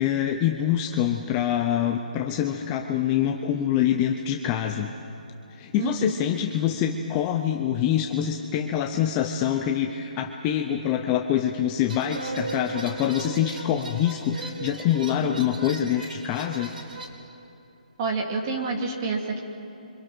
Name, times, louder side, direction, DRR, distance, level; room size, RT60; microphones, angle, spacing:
voice 1, 0.0-4.9 5.6-16.7, left 10 dB, 15° left, 4 dB, 0.6 m, -25 dB
voice 2, 5.8-6.1 18.0-19.4, right 4 dB, 25° right, 1 dB, 2.6 m, -28 dB
sound 1, 11.9-17.1, right 2 dB, 80° right, 4.1 m, -39 dB
sound 2, 12.1-14.7, right 3 dB, 60° right, 1.9 m, -37 dB
29.5 x 25.0 x 6.2 m, 2.9 s
hypercardioid pair, 175°, 5 cm